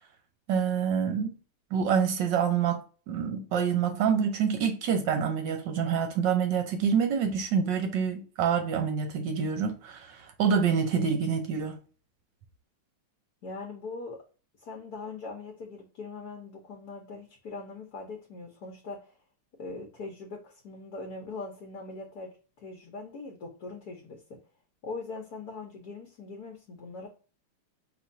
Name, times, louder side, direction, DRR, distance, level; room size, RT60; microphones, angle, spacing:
voice 1, 0.5-1.3 1.7-2.8 3.1-11.8, right 7 dB, 65° right, 1.2 m, -27 dB
voice 2, 13.4-14.2 14.6-19.2 19.6-24.2 24.8-27.1, left 3 dB, 55° left, 1.2 m, -41 dB
5.1 x 3.2 x 2.6 m
omnidirectional pair, 2.4 m